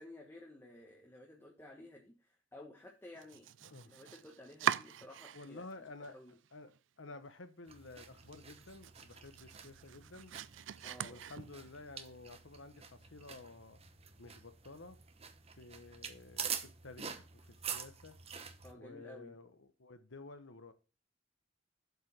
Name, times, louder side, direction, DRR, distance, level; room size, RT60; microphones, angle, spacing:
voice 1, 0.0-3.5 3.8-5.6 6.1-6.3 10.8-11.2 18.6-19.3, left 1 dB, 15° left, 1.5 m, -54 dB
Domestic sounds home sounds, 3.1-5.7 6.0-6.8 7.1-7.2 7.7-7.8 8.1-11.8, right 9 dB, 70° right, 0.4 m, -41 dB
voice 2, 3.6-3.9 5.3-6.1 6.5-6.7 7.0-10.3 11.0-13.8 14.2-15.0 15.5-18.2 18.8-20.7, left 3 dB, 75° left, 1.1 m, -52 dB
sound 1, 7.7-18.7, right 7 dB, 30° right, 0.8 m, -47 dB
8.0 x 5.0 x 6.0 m
head